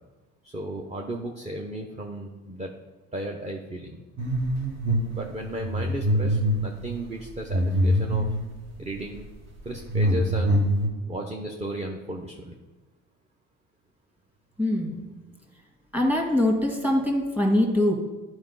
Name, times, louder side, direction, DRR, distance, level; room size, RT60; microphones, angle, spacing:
voice 1, 0.4-2.7 3.1-4.0 5.1-8.3 8.8-9.3 9.6-10.6 11.1-12.6, right 1 dB, 20° right, 1 dB, 0.9 m, -34 dB
sound 1, 4.2-5.1 5.4-8.5 9.1-9.3 9.6-10.9, equal, 50° right, 1.8 m, -24 dB
voice 2, 14.6-15.1 15.9-17.9, left 1 dB, 5° right, 0 dB, 1.9 m, -23 dB
10.5 x 4.9 x 4.0 m, 1.2 s
supercardioid pair, 85°, 33 cm